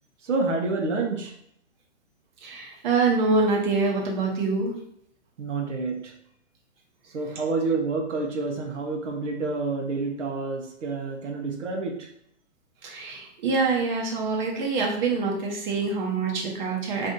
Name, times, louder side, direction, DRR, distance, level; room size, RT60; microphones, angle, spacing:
voice 1, 0.2-1.3 5.4-6.1 7.1-12.1, right 3 dB, 85° right, 2 dB, 0.8 m, -28 dB
voice 2, 2.4-4.7 12.8-17.1, right 4 dB, 40° right, 0 dB, 0.9 m, -25 dB
2.6 x 2.6 x 3.6 m, 0.69 s
hypercardioid pair, 150°, 35 cm